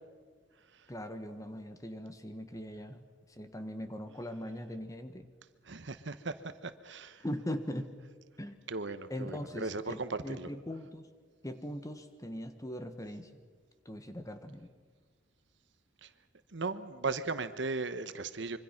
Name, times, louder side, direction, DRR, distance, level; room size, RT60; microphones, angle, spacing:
voice 1, 0.9-3.0 3.4-5.3 7.2-7.9 8.4-8.6 9.1-11.1 11.4-13.4 13.8-14.7, equal, 15° left, 8 dB, 1.4 m, -40 dB
voice 2, 5.6-6.4 6.6-7.2 8.7-10.5 16.0-16.1 16.5-18.6, right 3 dB, 65° right, 12 dB, 1.1 m, -37 dB
25.5 x 24.0 x 5.9 m, 1.5 s
head